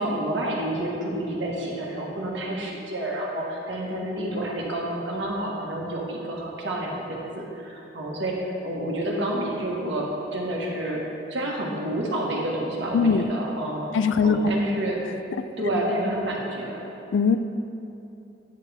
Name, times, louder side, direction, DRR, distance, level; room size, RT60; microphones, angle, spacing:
voice 1, 0.0-11.0 11.3-13.9 14.2-15.0 15.6-16.8, right 1 dB, 70° right, -2 dB, 1.5 m, -29 dB
voice 2, 12.9-13.3 13.9-14.4 17.1-17.4, left 6 dB, 80° left, 11 dB, 0.4 m, -20 dB
9.1 x 8.2 x 3.5 m, 2.8 s
head